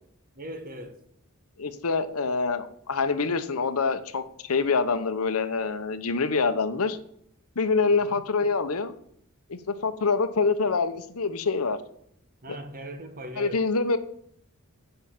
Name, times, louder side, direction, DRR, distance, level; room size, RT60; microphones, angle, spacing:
voice 1, 0.3-1.0 7.8-8.2 12.4-13.6, right 1 dB, 40° right, 1.4 m, -40 dB
voice 2, 1.6-7.0 7.6-8.9 9.5-11.8 12.5-12.6 13.4-14.0, left 4 dB, 75° left, 0.8 m, -26 dB
8.8 x 5.6 x 7.2 m
head